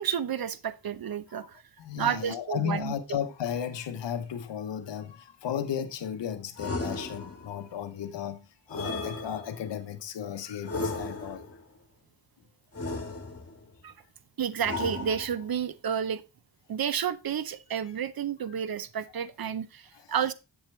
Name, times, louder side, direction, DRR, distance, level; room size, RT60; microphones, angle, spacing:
voice 1, 0.0-1.6 2.0-2.9 13.8-13.9 14.4-16.2 16.7-20.3, right 8 dB, 60° right, 0.6 m, -31 dB
voice 2, 1.8-8.4 8.7-11.5, left 9 dB, 85° left, 0.7 m, -34 dB
sound 1, 6.6-7.6 8.7-9.8 10.6-11.6 12.7-13.6 14.6-15.6, left 2 dB, 35° left, 1.5 m, -35 dB
7.3 x 6.4 x 3.1 m
cardioid pair, 45°, 42 cm